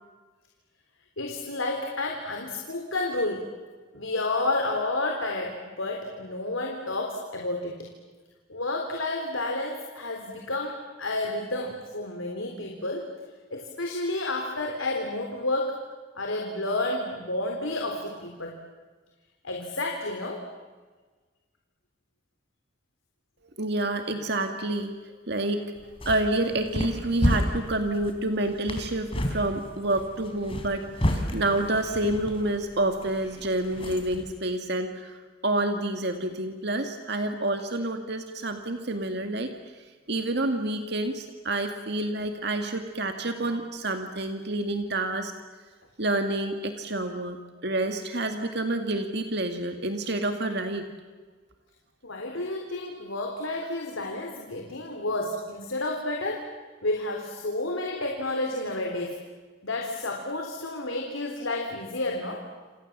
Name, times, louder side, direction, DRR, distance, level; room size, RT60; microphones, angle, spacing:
voice 1, 1.2-3.5 3.9-7.9 8.5-13.1 13.5-15.8 16.2-18.6 19.4-20.5 52.0-56.5 56.8-59.2 59.6-62.4, left 2 dB, 90° left, 2 dB, 3.7 m, -30 dB
voice 2, 23.6-24.9 25.3-25.6 26.1-35.1 35.4-39.5 40.1-45.3 46.0-50.9, right 2 dB, 55° right, 5 dB, 2.1 m, -28 dB
sound 1, 25.8-34.3, equal, 30° left, 3.7 m, -32 dB
29.0 x 27.5 x 7.4 m, 1.4 s
head